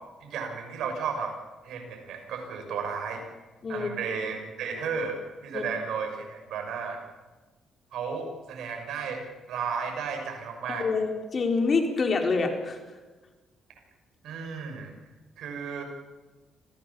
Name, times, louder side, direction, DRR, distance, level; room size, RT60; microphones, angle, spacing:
voice 1, 0.2-1.3 1.6-3.2 3.7-7.0 7.9-10.9 14.2-14.9 15.4-15.8, right 5 dB, 75° right, 3 dB, 6.0 m, -33 dB
voice 2, 10.7-12.8, left 4 dB, 40° left, 4 dB, 4.5 m, -26 dB
27.0 x 16.5 x 7.1 m, 1.2 s
cardioid pair, 90°, 0 cm